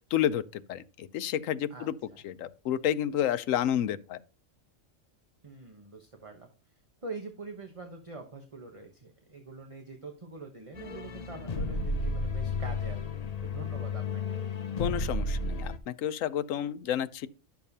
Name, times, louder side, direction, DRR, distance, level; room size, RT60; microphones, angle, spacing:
voice 1, 0.1-2.0 2.2-4.2 14.8-17.3, left 10 dB, 85° left, 1.0 m, -30 dB
voice 2, 5.4-6.5 7.0-14.4, right 3 dB, 30° right, 1.1 m, -44 dB
sound 1, 10.8-15.8, left 3 dB, 40° left, 0.6 m, -32 dB
11.5 x 7.0 x 2.7 m
omnidirectional pair, 1.3 m